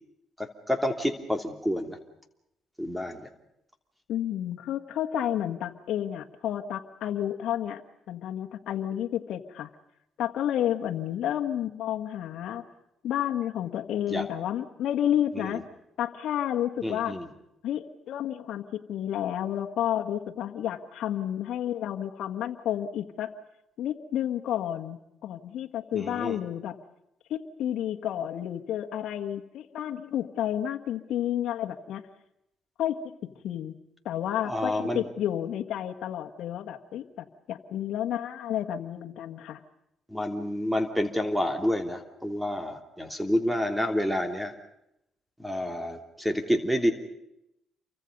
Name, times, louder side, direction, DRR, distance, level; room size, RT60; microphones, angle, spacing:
voice 1, 0.4-2.0 2.8-3.3 14.1-14.3 15.3-15.6 16.8-17.3 25.9-26.4 34.4-35.0 40.1-44.5 45.4-46.9, left 1 dB, 5° right, 6 dB, 3.1 m, -29 dB
voice 2, 4.1-7.8 8.1-9.7 10.2-12.7 13.0-15.6 16.0-17.2 17.6-23.3 23.8-25.0 25.2-26.8 27.3-32.0 32.8-33.8 34.1-39.6, left 11 dB, 75° left, 3 dB, 1.6 m, -31 dB
29.0 x 24.5 x 5.4 m, 0.83 s
cardioid pair, 90°, 0 cm